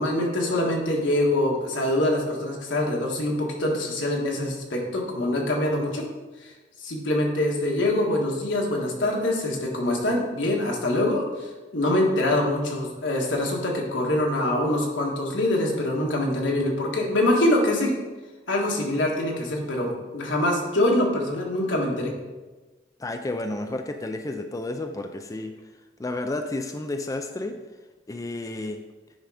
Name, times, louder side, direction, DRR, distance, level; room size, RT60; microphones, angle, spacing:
voice 1, 0.0-6.0 6.4-6.5 6.8-17.9 18.5-22.1, left 1 dB, 85° left, -1 dB, 1.6 m, -24 dB
voice 2, 23.0-25.6 26.0-27.6 28.1-28.8, left 2 dB, 20° left, 6 dB, 0.4 m, -31 dB
9.9 x 3.7 x 5.0 m, 1.2 s
head